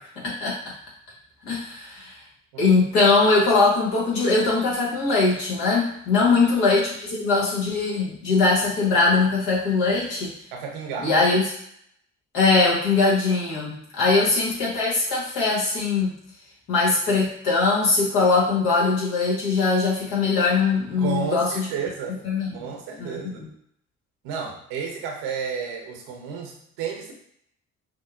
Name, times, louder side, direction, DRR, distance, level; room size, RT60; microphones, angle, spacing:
voice 1, 0.2-0.6 1.5-2.1 2.6-10.3 11.0-11.4 12.3-16.1 16.7-21.7 22.2-22.5 23.0-23.2, left 3 dB, 80° left, -4 dB, 1.4 m, -21 dB
voice 2, 10.5-11.1 14.0-14.2 21.0-22.2 22.5-23.5 24.2-27.1, right 6 dB, 80° right, 1 dB, 0.8 m, -32 dB
6.0 x 2.1 x 2.5 m, 0.69 s
hypercardioid pair, 50°, 37 cm